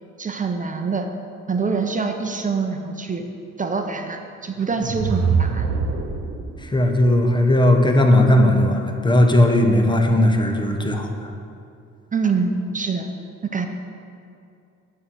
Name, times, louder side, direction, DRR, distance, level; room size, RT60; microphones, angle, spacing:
voice 1, 0.2-1.1 1.5-3.2 3.6-5.7 12.1-13.1 13.5-13.7, right 4 dB, 25° right, 5 dB, 0.8 m, -25 dB
sound 1, 4.6-6.6, right 5 dB, 50° right, 0.9 m, -23 dB
voice 2, 6.6-11.3, left 1 dB, 15° left, 3 dB, 1.1 m, -17 dB
8.6 x 5.7 x 6.4 m, 2.6 s
cardioid pair, 90°, 30 cm